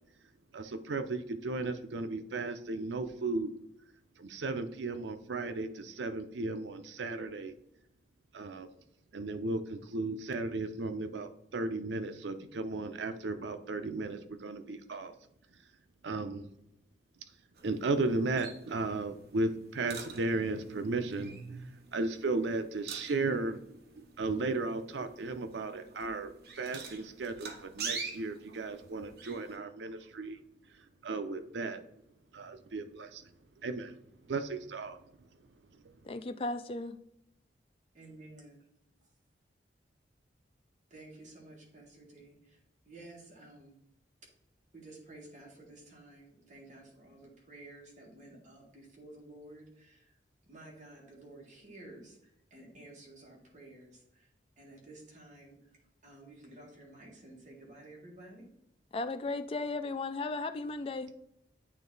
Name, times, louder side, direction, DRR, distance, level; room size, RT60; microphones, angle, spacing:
voice 1, 0.5-3.5 4.2-7.5 8.3-8.7 9.1-15.1 16.0-16.5 17.6-30.4 31.0-31.8 32.3-33.3 33.6-33.9 34.3-35.0, right 3 dB, 85° right, 0.6 m, -35 dB
sound 1, 17.5-29.6, right 5 dB, 60° right, 0.9 m, -47 dB
voice 2, 36.0-37.0 58.9-61.1, left 3 dB, 30° left, 0.3 m, -35 dB
voice 3, 38.0-38.6 40.9-42.6 42.8-43.8 44.7-50.2 50.5-54.3 54.6-55.6 56.0-58.5, right 2 dB, 45° right, 1.9 m, -52 dB
8.7 x 3.0 x 3.9 m
head